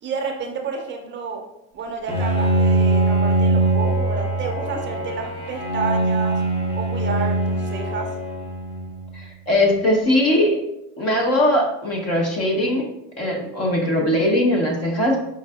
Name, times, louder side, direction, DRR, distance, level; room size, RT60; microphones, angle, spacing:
voice 1, 0.0-1.4 1.7-6.4 6.7-8.1, right 5 dB, 30° right, 2 dB, 0.5 m, -30 dB
Bowed string instrument, 2.1-9.2, right 2 dB, 15° left, 0.7 m, -22 dB
voice 2, 9.1-10.6 11.0-12.9 13.2-15.3, left 1 dB, 40° left, 0 dB, 0.8 m, -20 dB
4.7 x 2.6 x 2.3 m, 0.86 s
supercardioid pair, 110°, 38 cm